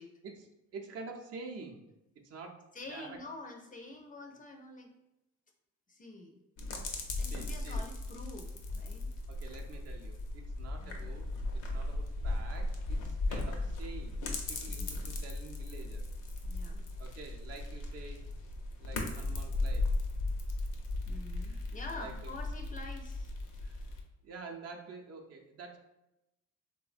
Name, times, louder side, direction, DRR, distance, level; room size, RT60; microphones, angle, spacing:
voice 1, 0.2-1.8 2.2-2.6 2.9-3.2 7.3-7.8 9.3-11.3 11.5-14.2 14.5-16.0 17.0-18.2 18.8-19.9 21.5-21.6 21.9-22.3 23.6-23.7 24.2-25.8, right 4 dB, 55° right, 2 dB, 0.5 m, -48 dB
voice 2, 2.7-4.9 5.9-6.3 6.8-9.1 10.8-11.0 14.6-15.2 16.4-16.8 21.1-23.3, left 2 dB, 30° left, 3 dB, 0.4 m, -47 dB
sound 1, 6.6-24.0, left 2 dB, 80° left, 0.6 m, -37 dB
3.3 x 2.1 x 2.4 m, 0.90 s
cardioid pair, 90°, 30 cm